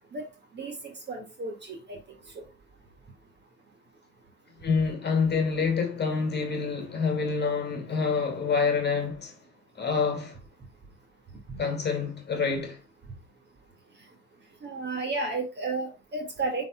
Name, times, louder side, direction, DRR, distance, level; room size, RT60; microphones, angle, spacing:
voice 1, 1.1-2.0 14.6-16.7, right 3 dB, 25° right, 1.8 m, -32 dB
voice 2, 4.6-9.4 9.8-10.4 11.6-12.8, left 5 dB, 25° left, 2.3 m, -27 dB
11.5 x 4.1 x 2.2 m
figure-of-eight pair, 80°, 44 cm